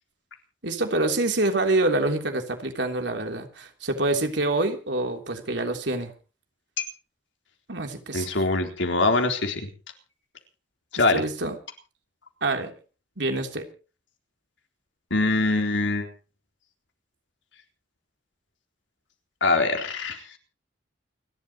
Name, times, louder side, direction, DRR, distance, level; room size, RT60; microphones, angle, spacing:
voice 1, 0.6-6.1 7.7-8.3 11.1-11.6 12.4-12.7 13.2-13.7, right 2 dB, 70° right, 4 dB, 3.4 m, -26 dB
voice 2, 8.1-9.7 10.9-11.2 15.1-16.1 19.4-20.2, left 3 dB, 80° left, 4 dB, 3.8 m, -23 dB
29.0 x 12.5 x 3.0 m, 0.35 s
head